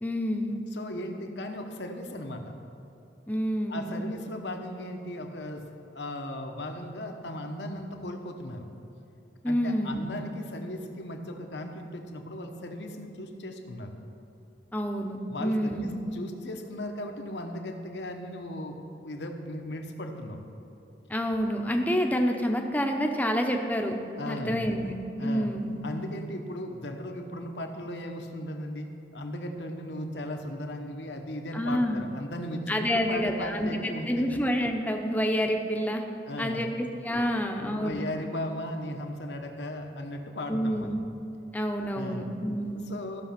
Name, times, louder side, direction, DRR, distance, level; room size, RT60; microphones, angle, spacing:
voice 1, 0.0-0.6 3.3-4.1 9.4-10.1 14.7-15.9 21.1-23.9 24.3-24.9 25.2-25.8 31.5-32.1 32.7-36.0 36.4-38.0 40.5-41.0 41.5-42.9, equal, 10° left, 3 dB, 0.7 m, -28 dB
voice 2, 0.7-2.4 3.7-5.6 5.9-8.7 9.4-13.9 15.3-20.4 24.2-24.7 25.2-25.5 25.8-28.9 29.1-34.3 36.3-36.7 37.2-41.0 41.9-42.3 42.9-43.2, left 1 dB, 70° left, 4 dB, 1.0 m, -37 dB
14.0 x 6.2 x 5.9 m, 2.9 s
head